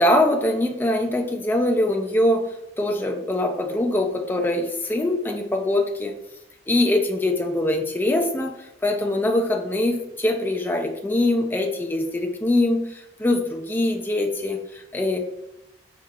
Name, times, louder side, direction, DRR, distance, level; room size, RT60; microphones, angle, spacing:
voice 1, 0.0-6.1 6.7-8.5 8.8-15.2, left 1 dB, 10° left, 2 dB, 0.4 m, -23 dB
4.8 x 2.8 x 2.3 m, 0.85 s
head